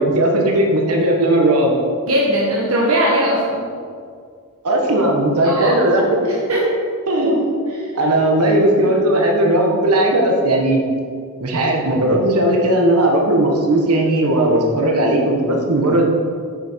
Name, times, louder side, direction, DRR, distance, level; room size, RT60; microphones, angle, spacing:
voice 1, 0.0-1.8 4.6-6.3 7.1-7.6 7.9-10.8 11.4-16.0, right 1 dB, 85° right, 0 dB, 1.5 m, -17 dB
voice 2, 2.1-3.6 5.4-5.8 6.3-6.6 7.7-8.1, equal, 65° right, -4 dB, 1.3 m, -20 dB
8.2 x 6.6 x 4.6 m, 2.2 s
head